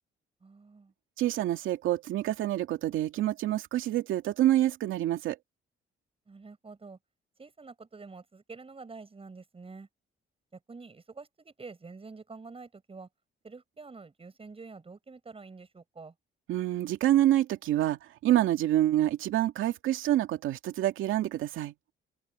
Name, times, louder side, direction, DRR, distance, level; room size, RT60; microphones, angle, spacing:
voice 1, 0.4-0.9 6.3-7.0 7.4-9.9 10.5-13.1 13.4-16.1, right 4 dB, 30° right, 7.9 m, -47 dB
voice 2, 1.2-5.4 16.5-21.7, right 13 dB, 85° right, 2.4 m, -27 dB
open air
cardioid pair, 90°, 20 cm